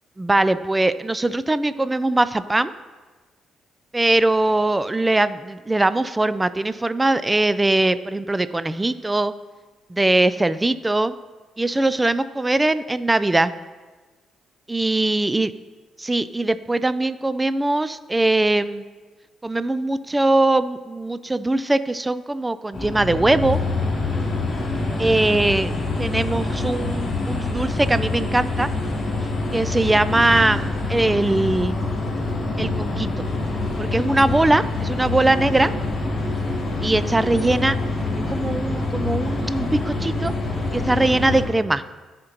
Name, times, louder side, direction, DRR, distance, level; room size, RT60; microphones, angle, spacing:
voice 1, 0.2-2.7 3.9-9.3 9.9-11.1 11.6-13.5 14.7-15.5 16.0-18.8 19.4-23.6 25.0-28.7 29.5-31.7 32.6-33.1 33.8-35.7 36.8-37.8 38.3-40.3 40.7-41.8, right 2 dB, 15° right, 14 dB, 0.3 m, -21 dB
sound 1, 22.7-41.4, left 2 dB, 40° left, 2.5 m, -25 dB
14.5 x 5.1 x 2.9 m, 1.3 s
cardioid pair, 90°, 0 cm